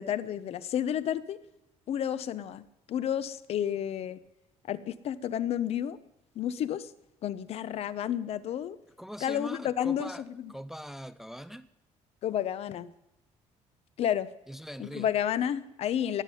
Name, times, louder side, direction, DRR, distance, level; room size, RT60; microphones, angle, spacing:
voice 1, 0.0-1.4 1.9-4.2 4.6-6.0 6.3-6.9 7.2-8.8 9.2-10.1 12.2-12.9 14.0-14.3 14.8-16.2, left 10 dB, 55° left, 0.8 m, -31 dB
voice 2, 9.0-11.7 14.5-15.2, equal, 5° right, 0.5 m, -42 dB
18.5 x 7.5 x 10.0 m
cardioid pair, 145°, 13 cm